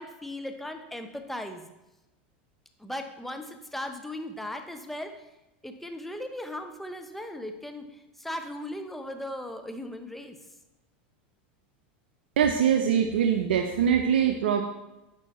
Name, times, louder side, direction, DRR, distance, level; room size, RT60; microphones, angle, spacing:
voice 1, 0.0-1.7 2.8-5.1 5.6-7.8 8.2-10.4, left 1 dB, 5° left, 6 dB, 0.7 m, -37 dB
voice 2, 12.4-14.6, right 8 dB, 85° right, 5 dB, 0.5 m, -23 dB
8.8 x 5.5 x 3.0 m, 0.98 s
supercardioid pair, 115°, 6 cm